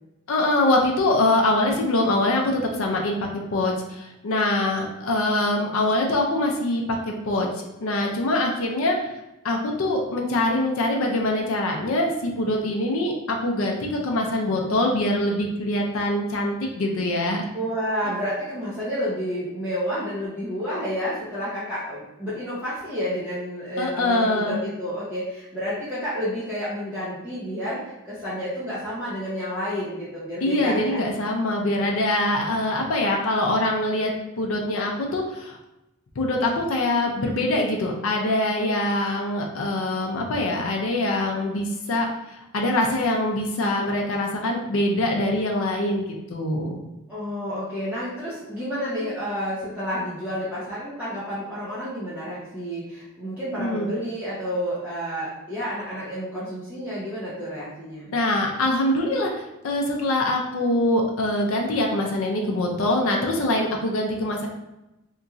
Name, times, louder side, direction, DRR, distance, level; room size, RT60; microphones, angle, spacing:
voice 1, 0.3-9.1 9.4-17.5 23.8-24.6 30.4-35.6 36.2-46.8 53.6-53.9 58.1-64.5, left 1 dB, 70° left, 1 dB, 0.5 m, -24 dB
voice 2, 17.5-31.0 47.1-58.1, equal, 10° right, -12 dB, 0.8 m, -30 dB
2.9 x 2.5 x 2.4 m, 0.93 s
head